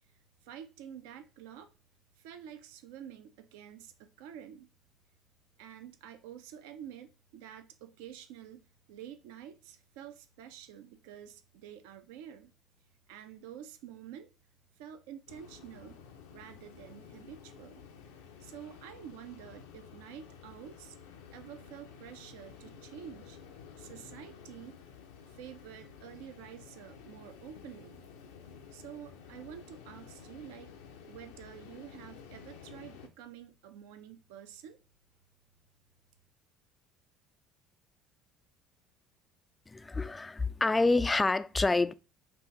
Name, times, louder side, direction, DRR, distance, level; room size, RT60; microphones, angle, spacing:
voice 1, 0.4-1.7 2.2-4.7 5.6-12.5 13.1-14.3 14.8-16.0 16.3-17.8 18.4-21.0 21.3-23.4 23.8-24.8 25.2-28.0 28.7-30.7 31.1-34.8, right 9 dB, 60° right, 0.4 m, -49 dB
sound 1, 15.3-33.1, left 7 dB, 70° left, 0.6 m, -52 dB
voice 2, 39.7-41.9, left 3 dB, 15° left, 0.3 m, -27 dB
4.8 x 2.5 x 3.5 m
figure-of-eight pair, 60°, 0 cm